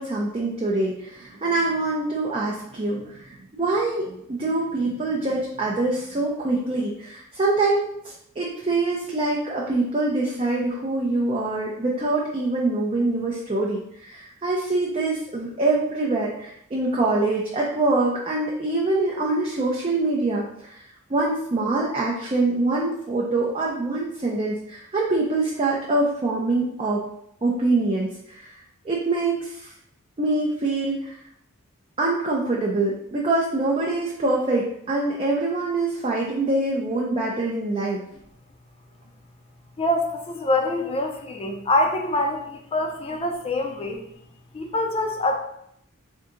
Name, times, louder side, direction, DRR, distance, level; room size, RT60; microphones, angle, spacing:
voice 1, 0.0-20.8 21.1-27.0 27.4-28.5 28.8-29.7 30.2-31.2 32.0-38.0, right 2 dB, 25° right, -4 dB, 0.5 m, -24 dB
voice 2, 39.8-44.0 44.5-45.4, left 1 dB, 25° left, 3 dB, 0.5 m, -25 dB
3.5 x 2.7 x 3.7 m, 0.73 s
head